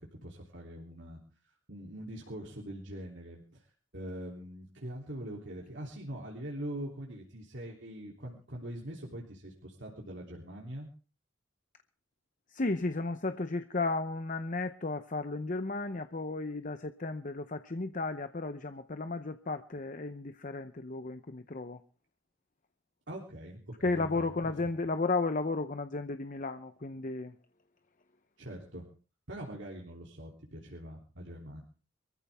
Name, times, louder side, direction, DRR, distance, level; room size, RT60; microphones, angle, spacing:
voice 1, 0.1-1.2 1.7-3.6 3.9-10.9 23.1-24.7 28.4-28.8 29.3-31.6, right 1 dB, 60° right, -2 dB, 3.3 m, -43 dB
voice 2, 12.5-21.8 23.8-27.3, left 3 dB, 40° left, 9 dB, 0.8 m, -34 dB
24.0 x 14.5 x 3.6 m, 0.37 s
head